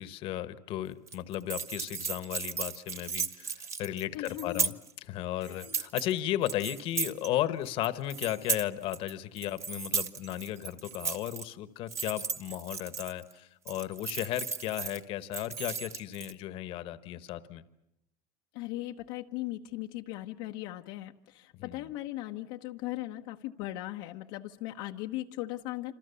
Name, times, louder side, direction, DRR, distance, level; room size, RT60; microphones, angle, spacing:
voice 1, 0.0-4.7 5.0-17.6 21.5-21.9, left 13 dB, 50° left, 13 dB, 1.3 m, -35 dB
sound 1, 1.1-4.9 5.4-6.1 6.5-7.3 7.7-9.1 9.4-11.4 11.9-13.3 13.7-15.0 15.3-16.3, right 6 dB, 25° right, 1.0 m, -35 dB
voice 2, 4.1-4.7 5.4-5.8 18.5-25.9, left 16 dB, 70° left, 3 dB, 1.1 m, -38 dB
27.5 x 26.5 x 7.0 m, 0.82 s
cardioid pair, 150°, 12 cm